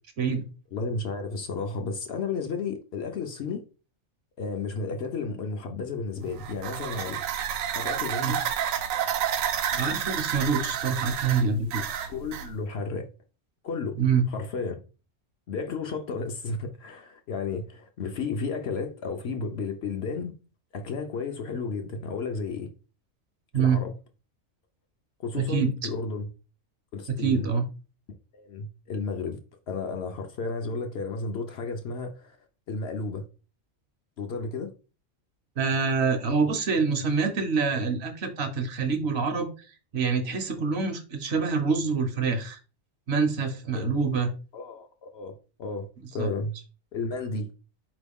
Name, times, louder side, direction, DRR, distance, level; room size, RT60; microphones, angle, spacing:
voice 1, 0.7-3.6 4.4-7.2 7.7-8.4 12.1-13.1 13.6-14.0 14.3-14.8 15.5-20.3 20.7-22.7 23.5-23.9 25.2-26.3 26.9-27.5 28.3-29.4 29.7-32.4 32.7-33.3 34.2-34.7 43.7-44.1 44.5-46.5 46.9-47.5, left 4 dB, 60° left, 0.8 m, -33 dB
sound 1, 6.2-12.5, right 9 dB, 85° right, 1.0 m, -30 dB
voice 2, 9.7-11.8 14.0-14.2 23.5-23.8 25.3-25.7 27.1-27.6 35.6-39.7 39.9-42.6 43.1-44.3 46.2-46.3, right 5 dB, 60° right, 0.9 m, -26 dB
4.4 x 3.0 x 3.5 m
omnidirectional pair, 1.3 m